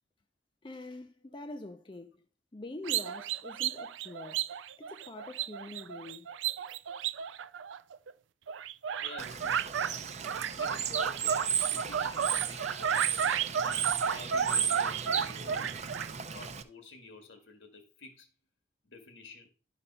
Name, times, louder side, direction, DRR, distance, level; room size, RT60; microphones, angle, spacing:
voice 1, 0.6-2.2 2.5-4.5 4.8-6.3, left 2 dB, 25° left, 0.5 m, -45 dB
sound 1, 2.8-8.1 8.5-9.9 10.2-16.1, right 8 dB, 85° right, 0.4 m, -33 dB
voice 2, 9.0-10.1 10.6-13.1 13.6-15.8 16.2-18.3 18.8-19.5, left 3 dB, 80° left, 2.0 m, -50 dB
Bird / Water, 9.2-16.6, right 8 dB, 35° right, 0.7 m, -35 dB
11.5 x 4.0 x 5.6 m
head